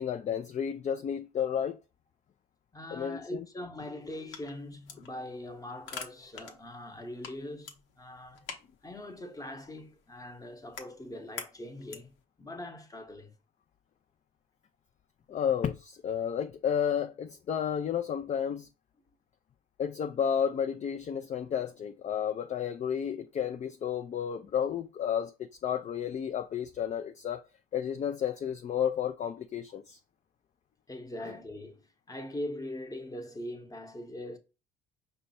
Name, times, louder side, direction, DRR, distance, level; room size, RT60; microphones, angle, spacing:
voice 1, 0.0-1.8 2.9-3.4 15.3-18.7 19.8-25.3 25.6-27.4 27.7-30.0, left 8 dB, 35° left, 0.4 m, -32 dB
voice 2, 2.7-8.5 8.8-13.3 30.9-34.4, left 1 dB, 15° left, 0.9 m, -42 dB
sound 1, 4.0-12.2, left 6 dB, 70° left, 0.9 m, -48 dB
5.1 x 2.2 x 4.1 m
supercardioid pair, 75°, 21 cm